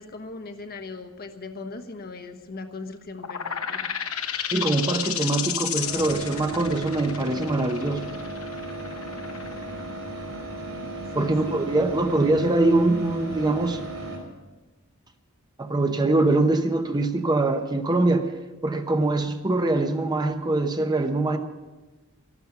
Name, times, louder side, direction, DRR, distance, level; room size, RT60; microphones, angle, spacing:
voice 1, 0.0-3.9 11.1-11.7, left 3 dB, 45° left, 6 dB, 1.2 m, -39 dB
sound 1, 3.2-10.5, left 9 dB, 75° left, 1.0 m, -32 dB
voice 2, 4.5-8.1 11.1-13.8 15.6-18.3 18.6-21.4, right 2 dB, 20° right, 6 dB, 0.8 m, -23 dB
sound 2, 5.8-14.2, right 2 dB, 80° right, 5.3 m, -35 dB
13.5 x 12.0 x 6.9 m, 1.2 s
head